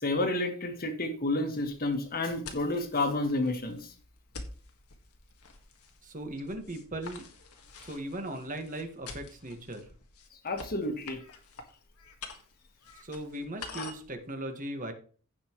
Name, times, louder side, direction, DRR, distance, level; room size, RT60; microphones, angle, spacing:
voice 1, 0.0-3.9 10.4-11.2, left 2 dB, 45° left, 5 dB, 1.7 m, -30 dB
sound 1, 1.6-14.1, left 4 dB, 85° left, 1.6 m, -48 dB
voice 2, 6.0-7.2 7.8-9.9 13.0-14.9, right 1 dB, 35° right, 5 dB, 1.7 m, -38 dB
16.0 x 5.4 x 3.1 m, 0.41 s
head